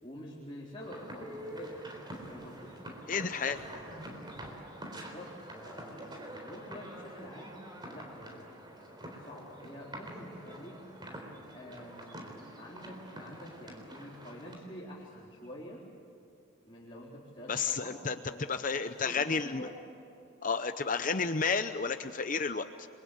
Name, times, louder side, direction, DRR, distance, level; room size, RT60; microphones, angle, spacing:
voice 1, 0.0-2.7 3.4-4.3 4.8-8.5 9.2-10.8 11.5-12.3 12.6-15.8 16.6-19.8, equal, 25° left, -5 dB, 3.9 m, -48 dB
sound 1, 0.8-14.6, right 1 dB, 20° right, 3.8 m, -46 dB
voice 2, 3.1-3.6 17.5-18.2 18.5-19.7 20.4-22.9, left 5 dB, 40° left, 9 dB, 0.7 m, -31 dB
30.0 x 22.5 x 8.2 m, 2.7 s
head